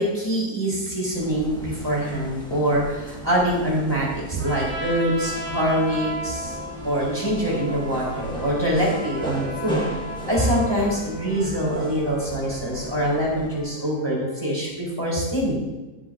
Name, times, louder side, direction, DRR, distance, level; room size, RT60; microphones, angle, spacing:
voice 1, 0.0-6.6 6.8-9.8 10.3-15.5, equal, 15° right, -5 dB, 4.1 m, -24 dB
sound 1, 1.1-13.7, right 1 dB, 5° left, 1.3 m, -37 dB
Trumpet, 4.4-11.0, right 1 dB, 80° right, 2.9 m, -34 dB
Wind instrument woodwind instrument, 6.3-9.9 10.2-14.5, left 3 dB, 55° left, 2.0 m, -40 dB
18.0 x 7.8 x 2.7 m, 1.1 s
omnidirectional pair, 1.7 m